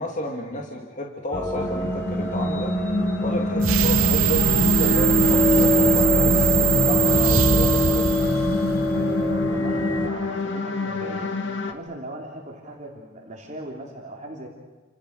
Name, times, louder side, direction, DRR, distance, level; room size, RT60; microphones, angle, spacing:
voice 1, 0.0-2.7 3.2-8.2, left 1 dB, 40° left, 0 dB, 2.6 m, -32 dB
sound 1, 1.3-10.1, left 1 dB, 10° left, 1.5 m, -24 dB
sound 2, 1.5-11.7, left 3 dB, 60° left, 2.1 m, -28 dB
sound 3, 3.6-9.0, right 9 dB, 85° right, 0.8 m, -21 dB
voice 2, 8.9-11.3 11.7-14.5, right 1 dB, 35° right, -1 dB, 3.6 m, -38 dB
30.0 x 27.0 x 6.7 m, 1.3 s
head